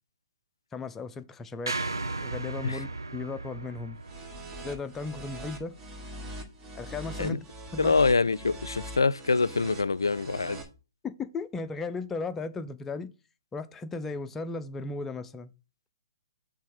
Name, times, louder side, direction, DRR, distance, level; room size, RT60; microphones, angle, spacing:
voice 1, 0.7-1.8 2.2-4.0 4.6-5.7 6.8-7.4 7.7-7.9 11.0-13.1 13.5-15.5, left 4 dB, 15° left, 0.5 m, -36 dB
sound 1, 1.7-6.0, right 3 dB, 85° right, 0.7 m, -37 dB
sound 2, 4.0-10.6, right 1 dB, 25° right, 1.5 m, -42 dB
voice 2, 7.8-10.6, left 4 dB, 85° left, 0.3 m, -25 dB
6.4 x 3.5 x 5.3 m
figure-of-eight pair, 125°, 2 cm